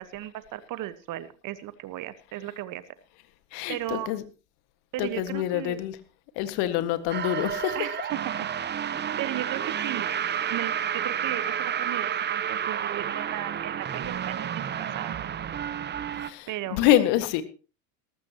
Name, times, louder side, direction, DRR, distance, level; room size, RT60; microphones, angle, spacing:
voice 1, 0.0-2.8 3.7-4.1 4.9-5.8 7.7-8.5 9.2-10.1 10.5-14.5 14.8-15.2 16.5-16.8, right 14 dB, 40° right, 15 dB, 1.3 m, -35 dB
voice 2, 3.5-4.2 5.0-6.0 6.4-7.9 16.2-17.4, left 13 dB, 55° left, 12 dB, 1.8 m, -26 dB
sound 1, 7.1-16.3, right 9 dB, 20° right, 0.9 m, -30 dB
19.0 x 14.5 x 3.0 m, 0.34 s
hypercardioid pair, 90°, 47 cm